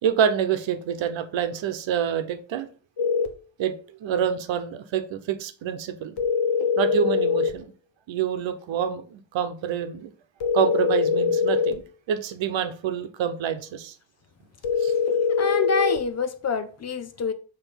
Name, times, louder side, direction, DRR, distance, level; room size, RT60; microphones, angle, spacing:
voice 1, 0.0-2.7 3.6-6.2 6.8-7.7 8.1-10.1 10.5-11.8 12.1-13.9 14.8-14.9, right 8 dB, 80° right, 1.0 m, -27 dB
sound 1, 3.0-3.3 6.2-7.6 10.4-11.8 14.6-16.1, left 6 dB, 60° left, 1.2 m, -23 dB
voice 2, 15.4-17.3, left 5 dB, 35° left, 0.6 m, -27 dB
7.1 x 3.2 x 5.8 m
wide cardioid pair, 170°, 44 cm